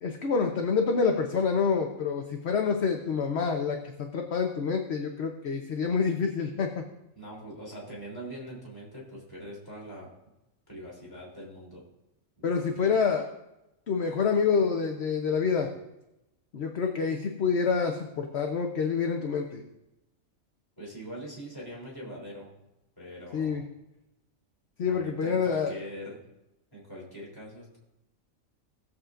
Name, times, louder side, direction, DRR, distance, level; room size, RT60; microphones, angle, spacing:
voice 1, 0.0-6.8 12.4-13.2 13.9-15.7 16.5-19.6 23.3-23.6 24.8-25.7, left 5 dB, 55° left, 3 dB, 1.0 m, -27 dB
voice 2, 7.1-10.1 10.7-11.8 12.4-12.5 12.8-12.9 20.8-22.5 23.0-23.6 24.8-26.2 26.7-27.8, equal, 15° left, -5 dB, 3.3 m, -42 dB
19.0 x 7.3 x 2.5 m, 0.93 s
omnidirectional pair, 1.4 m